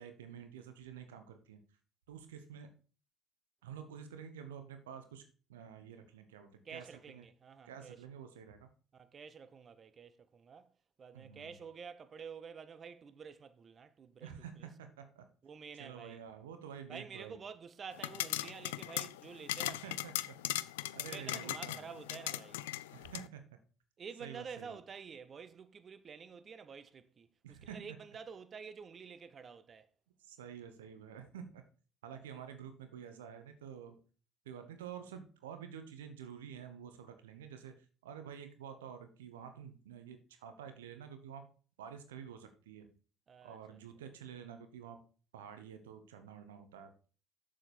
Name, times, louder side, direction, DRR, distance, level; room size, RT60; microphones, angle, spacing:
voice 1, 0.0-1.6 2.1-2.7 3.6-5.2 5.5-7.2 7.6-8.7 11.1-11.6 14.2-15.3 15.8-17.4 19.6-20.4 20.9-21.8 22.9-23.5 24.2-24.8 27.4-27.9 30.2-31.6 32.0-34.0 34.4-41.5 41.8-42.9 43.4-45.0 45.3-46.9, right 8 dB, 80° right, 1.1 m, -49 dB
voice 2, 6.6-8.1 8.9-10.7 11.0-14.7 15.4-16.2 16.9-20.0 21.0-22.6 24.0-29.9 43.3-43.8, right 6 dB, 40° right, 0.9 m, -49 dB
sound 1, 17.9-23.3, left 15 dB, 80° left, 0.3 m, -39 dB
7.6 x 7.3 x 4.4 m
hypercardioid pair, 60°, 0 cm